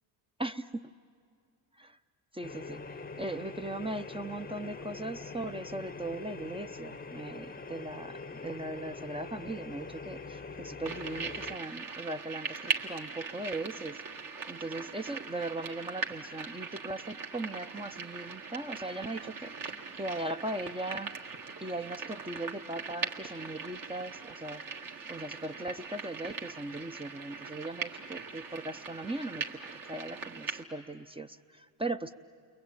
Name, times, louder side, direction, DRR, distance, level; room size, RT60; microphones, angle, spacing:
voice 1, 0.4-0.9 1.8-2.0 2.3-21.1 21.6-32.1, right 2 dB, 15° right, 8 dB, 0.7 m, -39 dB
sound 1, 2.4-11.6, left 4 dB, 20° left, 0.8 m, -43 dB
sound 2, 10.8-30.6, right 5 dB, 50° right, 2.1 m, -40 dB
29.0 x 22.5 x 9.1 m, 2.2 s
supercardioid pair, 70°, 41 cm